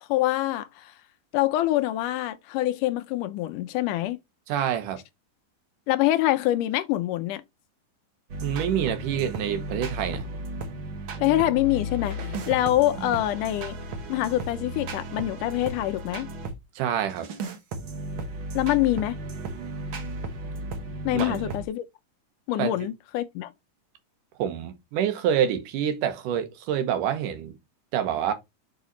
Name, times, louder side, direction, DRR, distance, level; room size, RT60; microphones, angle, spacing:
voice 1, 0.1-0.9 1.3-4.2 5.9-7.4 11.2-13.8 14.1-16.3 18.5-19.2 21.1-21.8 22.5-23.5, left 15 dB, 80° left, 2.0 m, -25 dB
voice 2, 4.5-5.0 8.4-10.3 13.0-13.1 16.8-17.3 21.1-21.4 22.6-22.7 24.4-27.6 27.9-28.3, right 9 dB, 70° right, 2.5 m, -27 dB
sound 1, 8.3-16.6 17.1-21.6, right 1 dB, 90° right, 1.1 m, -35 dB
5.7 x 5.2 x 4.0 m
omnidirectional pair, 4.0 m